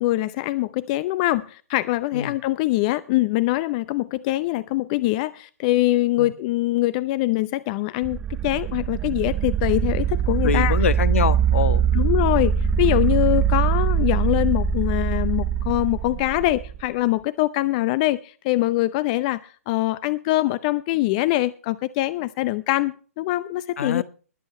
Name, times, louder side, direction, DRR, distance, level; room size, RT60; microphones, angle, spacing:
voice 1, 0.0-10.7 11.9-12.5 12.8-24.0, left 17 dB, 30° left, 0.7 m, -23 dB
sound 1, 8.0-16.8, right 8 dB, 15° right, 0.6 m, -22 dB
voice 2, 10.4-11.8 23.8-24.0, left 7 dB, 60° left, 1.4 m, -24 dB
20.5 x 8.1 x 4.4 m
hypercardioid pair, 140°, 8 cm